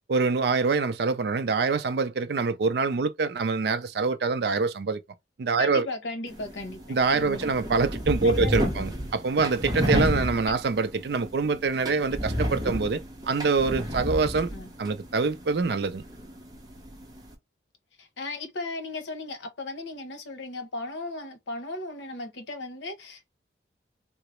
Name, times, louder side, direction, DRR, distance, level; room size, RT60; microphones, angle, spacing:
voice 1, 0.1-5.0 5.4-5.9 6.9-14.5 14.8-16.0, right 4 dB, 65° right, 0.4 m, -25 dB
voice 2, 5.6-6.8 7.2-7.5 8.2-8.8 10.5-10.6 14.5-14.7 18.0-23.3, left 2 dB, 90° left, 0.8 m, -36 dB
sound 1, 6.3-17.3, equal, 20° right, 0.7 m, -32 dB
3.7 x 2.0 x 3.0 m
head